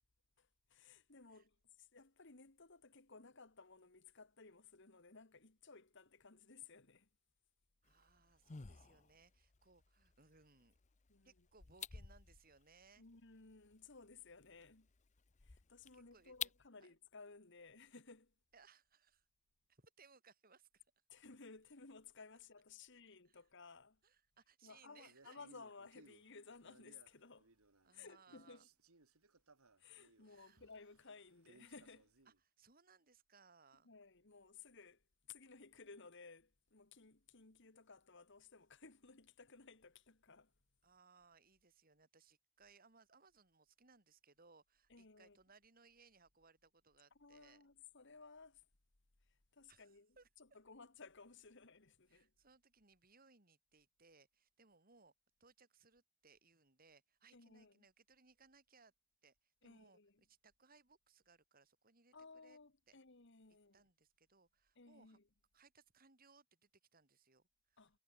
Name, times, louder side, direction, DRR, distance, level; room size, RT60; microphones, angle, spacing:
voice 1, 0.4-7.1 11.1-11.5 13.0-14.9 15.4-18.3 21.1-24.0 24.6-27.5 27.9-28.7 29.8-32.1 33.8-40.5 44.9-45.4 47.2-48.7 49.3-52.3 57.3-57.8 59.6-60.2 62.1-63.8 64.8-65.2 67.8-68.0, left 4 dB, 55° left, 1.8 m, -59 dB
sound 1, 7.8-16.7, left 8 dB, 35° left, 0.7 m, -53 dB
voice 2, 7.8-10.8 11.2-13.1 15.9-16.3 16.8-16.9 18.5-19.3 19.7-20.8 23.3-23.4 24.0-25.5 27.8-28.7 30.2-30.6 32.3-33.9 40.8-47.6 49.7-50.3 52.1-55.1 55.4-58.9 59.2-62.6 62.9-63.0 63.7-65.2 65.5-67.8, right 4 dB, 45° right, 4.2 m, -68 dB
Male speech man speaking, 25.0-28.0 28.3-32.4, right 2 dB, 90° right, 2.8 m, -68 dB
head